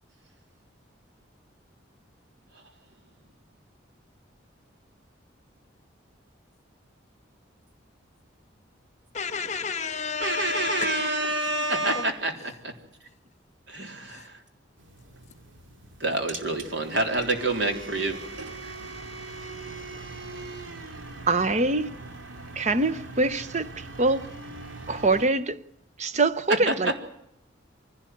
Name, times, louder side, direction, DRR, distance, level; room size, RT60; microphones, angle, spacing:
voice 1, 9.1-12.0 14.1-14.3, left 5 dB, 35° left, 1.3 m, -32 dB
voice 2, 10.2-12.7 13.7-14.3 16.0-18.2 26.5-27.0, right 2 dB, 65° right, 3.6 m, -27 dB
sound 1, 14.8-25.3, right 3 dB, 80° right, 2.6 m, -41 dB
voice 3, 21.3-21.9 22.6-23.7 24.0-24.3 24.9-25.6 26.0-27.0, right 3 dB, 35° right, 0.8 m, -24 dB
24.0 x 16.5 x 9.4 m
head